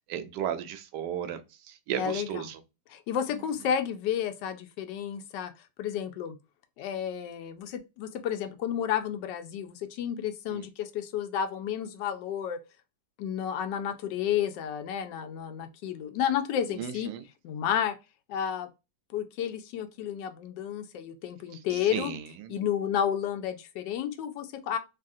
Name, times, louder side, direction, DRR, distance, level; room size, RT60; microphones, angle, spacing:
voice 1, 0.1-2.6 10.5-10.6 16.7-17.2 21.5-22.5, right 9 dB, 75° right, 1.1 m, -35 dB
voice 2, 2.0-2.4 2.9-5.5 5.8-6.4 6.8-12.6 13.2-17.1 17.4-17.9 18.3-18.7 19.1-22.1 22.5-24.8, left 9 dB, 90° left, 1.2 m, -31 dB
3.1 x 2.4 x 2.6 m
omnidirectional pair, 1.8 m